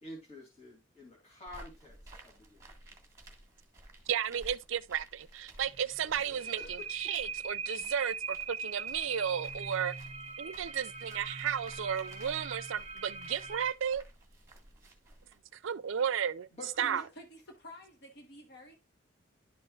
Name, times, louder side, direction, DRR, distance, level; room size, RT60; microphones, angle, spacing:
voice 1, 0.0-2.0 2.2-2.6 6.2-6.7 16.5-17.1, left 1 dB, 35° left, 2.7 m, -48 dB
sound 1, 1.5-15.4, right 1 dB, 15° right, 1.7 m, -55 dB
voice 2, 4.1-9.9 10.4-14.0 15.6-16.5 16.8-17.0, right 8 dB, 75° right, 0.4 m, -33 dB
sound 2, 5.6-13.7, right 5 dB, 35° right, 0.6 m, -41 dB
voice 3, 16.8-18.7, equal, 55° left, 1.3 m, -50 dB
11.0 x 5.5 x 2.4 m
head